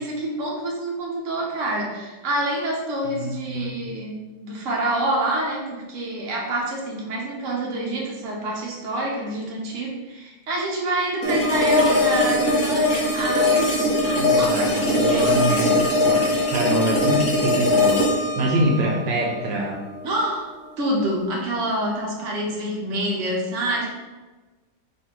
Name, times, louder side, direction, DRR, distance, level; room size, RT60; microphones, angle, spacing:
voice 1, 0.0-4.1 4.4-15.8 20.0-20.5 20.8-23.9, right 1 dB, 50° right, -3 dB, 1.1 m, -27 dB
voice 2, 3.2-3.8 14.2-19.8, right 1 dB, 75° right, -2 dB, 1.2 m, -25 dB
sound 1, 11.2-20.3, left 2 dB, 55° left, 1.2 m, -21 dB
3.2 x 2.7 x 4.4 m, 1.2 s
omnidirectional pair, 2.0 m